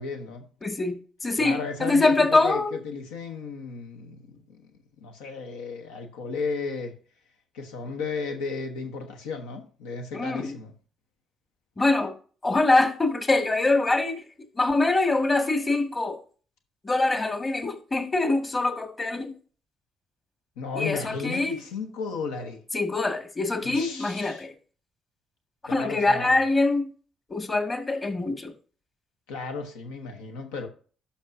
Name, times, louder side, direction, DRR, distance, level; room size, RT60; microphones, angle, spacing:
voice 1, 0.0-0.5 1.4-4.7 5.0-7.0 7.5-10.7 20.6-22.6 23.6-24.5 25.7-26.4 29.3-30.7, left 4 dB, 85° left, 1.0 m, -34 dB
voice 2, 0.6-2.8 10.1-10.5 11.8-12.1 12.4-14.2 14.5-16.2 16.8-19.3 20.7-21.6 22.7-24.5 25.7-26.9 27.3-28.5, left 2 dB, 25° left, 1.7 m, -24 dB
11.5 x 5.7 x 2.6 m
hypercardioid pair, 55°, 0 cm